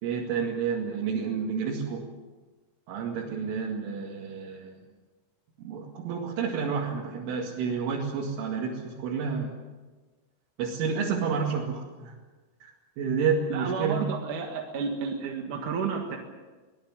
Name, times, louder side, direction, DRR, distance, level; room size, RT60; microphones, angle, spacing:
voice 1, 0.0-2.1 2.9-4.8 5.6-9.5 10.6-12.2 12.6-14.1, right 6 dB, 85° right, -3 dB, 4.7 m, -30 dB
voice 2, 13.5-16.2, right 5 dB, 55° right, 1 dB, 2.6 m, -31 dB
24.0 x 19.0 x 7.5 m, 1.3 s
omnidirectional pair, 5.5 m